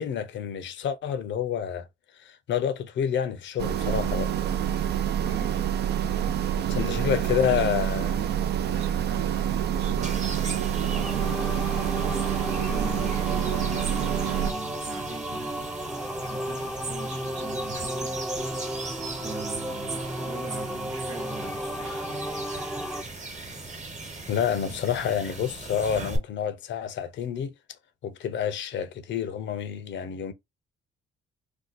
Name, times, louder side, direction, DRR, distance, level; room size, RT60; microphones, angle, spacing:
voice 1, 0.0-1.9 2.2-4.3 6.7-8.2 24.3-27.5 28.0-30.3, left 8 dB, 65° left, 0.6 m, -28 dB
sound 1, 3.6-14.5, right 9 dB, 55° right, 0.5 m, -27 dB
voice 2, 5.2-5.8 6.7-11.9 12.4-15.8 16.2-18.2 19.1-23.2 24.3-24.4 24.7-24.8, right 5 dB, 75° right, 1.0 m, -42 dB
sound 2, 10.0-26.2, right 3 dB, 35° right, 1.1 m, -38 dB
sound 3, 10.8-23.0, equal, 5° right, 0.5 m, -34 dB
2.7 x 2.3 x 4.0 m
cardioid pair, 90°, 20 cm